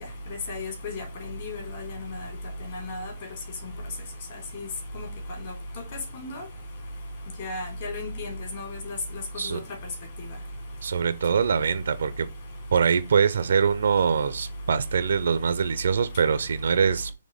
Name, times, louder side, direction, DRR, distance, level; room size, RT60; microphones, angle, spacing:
voice 1, 0.5-2.3 2.7-3.1 4.5-4.6 4.9-5.1 6.1-6.4 7.4-9.0 9.5-9.6, left 2 dB, 45° left, 3.1 m, -35 dB
voice 2, 10.8-12.3 12.7-17.1, right 6 dB, 60° right, 0.6 m, -23 dB
6.3 x 3.2 x 5.0 m
figure-of-eight pair, 130°, 0 cm